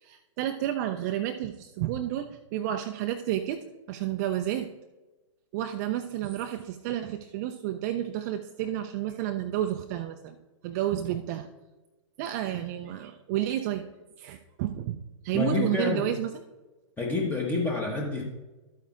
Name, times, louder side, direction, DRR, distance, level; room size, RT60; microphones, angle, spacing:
voice 1, 0.0-4.7 5.5-10.4 10.6-11.5 12.2-13.8 14.2-15.0 15.2-16.3, right 12 dB, 35° right, 7 dB, 0.5 m, -31 dB
voice 2, 15.3-16.1 17.0-18.2, left 3 dB, 10° left, 0 dB, 1.0 m, -28 dB
12.5 x 8.8 x 2.4 m, 1.1 s
figure-of-eight pair, 110°, 16 cm